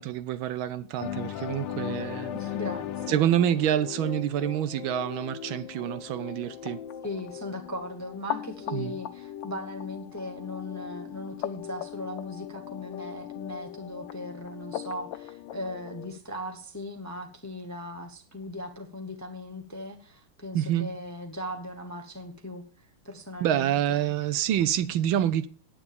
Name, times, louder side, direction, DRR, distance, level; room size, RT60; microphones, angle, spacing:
voice 1, 0.0-2.3 3.1-6.8 8.7-8.9 20.5-20.9 23.4-25.5, right 11 dB, 75° right, 1.4 m, -27 dB
sound 1, 1.0-4.8, left 11 dB, 85° left, 1.7 m, -36 dB
sound 2, 1.9-16.2, left 10 dB, 70° left, 1.2 m, -40 dB
voice 2, 2.3-3.2 7.0-24.1, left 1 dB, 10° left, 0.8 m, -38 dB
9.6 x 9.0 x 5.2 m
omnidirectional pair, 2.3 m